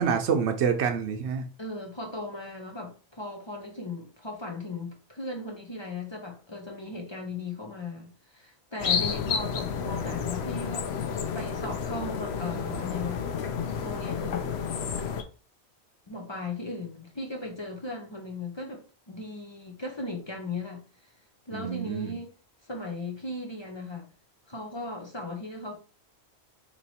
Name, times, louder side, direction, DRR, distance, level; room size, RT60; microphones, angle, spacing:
voice 1, 0.0-1.4 21.5-22.1, right 7 dB, 90° right, 0.9 m, -27 dB
voice 2, 1.6-10.9 11.3-13.3 13.8-14.5 16.1-20.9 21.5-22.3 22.7-24.1 24.5-25.8, left 2 dB, 30° left, 0.7 m, -37 dB
sound 1, 8.8-15.2, left 6 dB, 75° left, 0.8 m, -31 dB
3.0 x 3.0 x 4.1 m
omnidirectional pair, 1.1 m